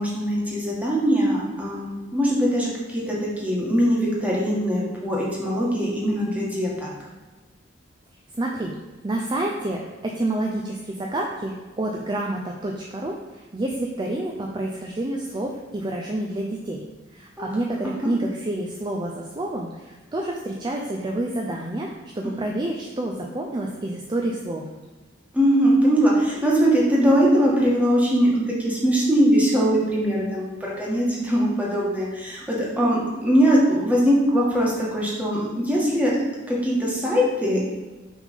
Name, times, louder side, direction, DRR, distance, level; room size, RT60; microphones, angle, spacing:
voice 1, 0.0-6.9 17.4-17.5 17.8-17.9 22.2-22.4 25.3-36.1 36.5-37.6, equal, 10° right, -5 dB, 1.6 m, -21 dB
voice 2, 8.4-8.7 9.0-16.8 17.1-24.6, right 1 dB, 25° right, 0 dB, 0.5 m, -28 dB
6.4 x 3.6 x 5.2 m, 1.3 s
head